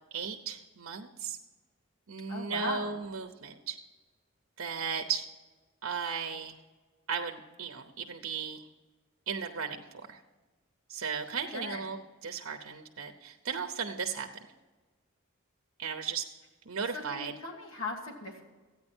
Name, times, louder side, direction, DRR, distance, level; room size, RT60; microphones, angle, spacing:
voice 1, 0.1-1.4 2.1-3.8 4.6-5.3 5.8-6.6 7.1-8.7 9.3-9.8 10.1-10.2 10.9-14.3 15.8-16.2 16.7-17.3, right 6 dB, 75° right, 5 dB, 0.8 m, -36 dB
voice 2, 2.3-3.0 11.5-11.8 16.9-18.4, left 3 dB, 85° left, 0 dB, 1.7 m, -38 dB
14.5 x 9.4 x 4.4 m, 1.3 s
head